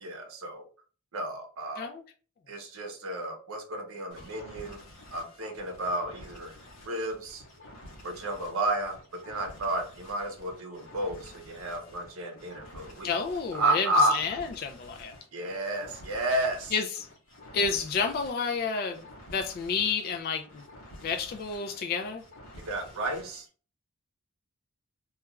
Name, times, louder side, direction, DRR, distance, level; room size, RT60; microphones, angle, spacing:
voice 1, 0.0-0.7 1.1-1.9 2.5-4.8 5.1-6.5 6.8-7.4 8.0-13.1 13.5-14.2 15.3-16.7 22.7-23.5, right 1 dB, 65° right, 0.6 m, -31 dB
sound 1, 4.1-23.5, left 1 dB, 60° left, 0.8 m, -50 dB
voice 2, 13.0-15.1 16.7-16.8 17.5-19.0 19.3-20.7 21.0-22.2, left 5 dB, 45° left, 0.3 m, -30 dB
2.3 x 2.3 x 3.0 m
head